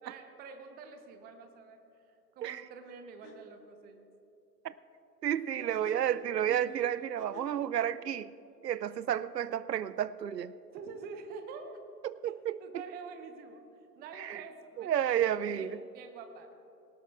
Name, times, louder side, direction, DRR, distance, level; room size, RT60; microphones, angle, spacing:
voice 1, 0.0-1.8 2.3-4.0 5.5-5.8 10.7-11.8 12.2-13.6 14.0-16.5, right 5 dB, 20° right, 7 dB, 0.9 m, -47 dB
sound 1, 2.8-2.9 3.2-3.4 5.5-7.7, left 6 dB, 35° left, 1.2 m, -52 dB
voice 2, 5.2-8.3 8.6-10.5 12.0-12.6 14.2-14.4 14.8-15.8, right 10 dB, 75° right, 17 dB, 0.6 m, -31 dB
18.5 x 18.0 x 2.4 m, 2.8 s
figure-of-eight pair, 110°, 50 cm